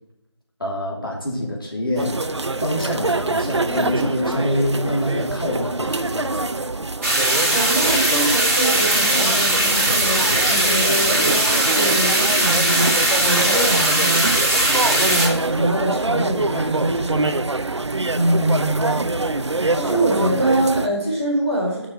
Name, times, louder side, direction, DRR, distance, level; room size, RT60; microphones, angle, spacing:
voice 1, 0.6-6.6, left 1 dB, 50° left, -1 dB, 3.0 m, -26 dB
sound 1, 2.0-20.9, right 2 dB, 75° right, 0.6 m, -25 dB
sound 2, 7.0-15.3, right 1 dB, 30° right, 2.3 m, -19 dB
voice 2, 7.5-17.3 18.1-19.1 19.7-21.9, right 1 dB, 10° left, -11 dB, 1.4 m, -24 dB
6.8 x 6.5 x 6.9 m, 0.88 s
figure-of-eight pair, 175°, 15 cm